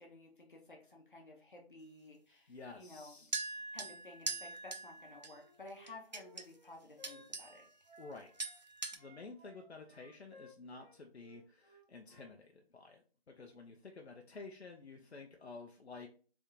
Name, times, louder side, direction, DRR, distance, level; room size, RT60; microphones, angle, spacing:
voice 1, 0.0-3.3 3.7-7.6, left 2 dB, 50° left, 0 dB, 1.0 m, -54 dB
voice 2, 2.5-3.3 3.6-3.7 8.0-8.3 8.9-16.1, left 3 dB, 80° left, 2 dB, 0.7 m, -51 dB
sound 1, 3.3-5.3 5.9-6.4 7.0-7.6 7.9-8.1 8.4-9.0, right 3 dB, 45° right, 0.4 m, -42 dB
Wind instrument woodwind instrument, 5.3-8.5 8.9-12.3, left 1 dB, 15° right, 0.8 m, -61 dB
3.6 x 3.5 x 2.7 m, 0.40 s
figure-of-eight pair, 165°, 32 cm